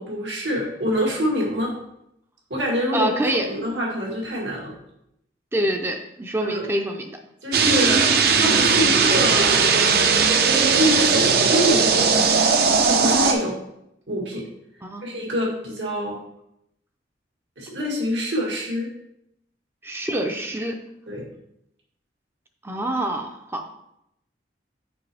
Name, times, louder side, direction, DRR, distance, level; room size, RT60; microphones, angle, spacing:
voice 1, 0.0-1.7 2.5-3.1 3.5-4.7 6.4-6.7 7.4-9.6 10.6-12.4 12.8-13.6 14.1-14.4 15.0-16.2 17.6-18.9 21.1-21.3, equal, 85° right, -3 dB, 1.6 m, -26 dB
voice 2, 2.9-3.5 5.5-7.2 14.8-15.0 19.8-20.8 22.6-23.6, right 1 dB, 15° right, 4 dB, 0.5 m, -26 dB
sound 1, 7.5-13.3, right 5 dB, 60° right, 0.6 m, -18 dB
6.1 x 4.9 x 3.4 m, 0.79 s
head